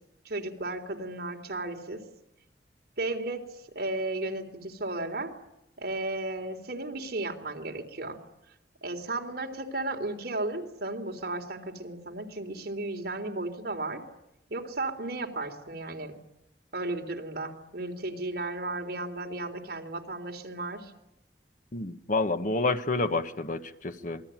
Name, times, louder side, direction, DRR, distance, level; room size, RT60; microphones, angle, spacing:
voice 1, 0.2-2.0 3.0-3.4 3.8-5.3 5.8-8.2 8.8-14.0 14.5-16.2 16.7-20.9, right 2 dB, 60° right, 2 dB, 3.7 m, -34 dB
voice 2, 21.7-24.2, left 3 dB, 45° left, 9 dB, 1.3 m, -29 dB
27.5 x 21.5 x 9.2 m, 0.86 s
head